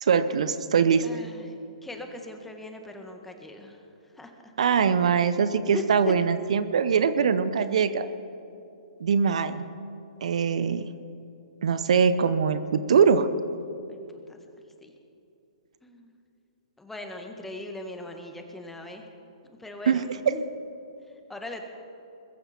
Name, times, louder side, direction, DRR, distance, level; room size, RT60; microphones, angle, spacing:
voice 1, 0.0-1.0 4.6-8.1 9.0-9.6 10.2-10.9 11.6-13.3 19.9-20.0, right 6 dB, 65° right, 12 dB, 0.8 m, -22 dB
voice 2, 1.0-3.8 4.1-4.5 4.8-5.0 5.7-6.2 13.9-14.0 14.3-14.4 14.8-14.9 15.8-16.1 16.8-19.0 19.5-20.4 21.1-21.6, left 1 dB, 5° left, 4 dB, 1.7 m, -39 dB
21.5 x 14.0 x 4.5 m, 2.7 s
hypercardioid pair, 130°, 4 cm